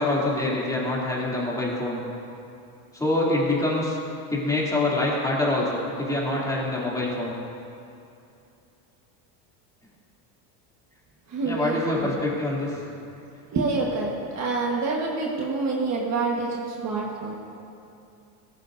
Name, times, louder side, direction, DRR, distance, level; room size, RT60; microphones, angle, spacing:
voice 1, 0.0-2.0 2.9-4.0 4.3-7.3 11.4-12.7, left 2 dB, 5° left, -5 dB, 2.8 m, -25 dB
voice 2, 11.3-12.2 13.5-17.3, right 3 dB, 35° right, -1 dB, 1.4 m, -27 dB
18.0 x 14.5 x 2.7 m, 2.6 s
supercardioid pair, 135°, 48 cm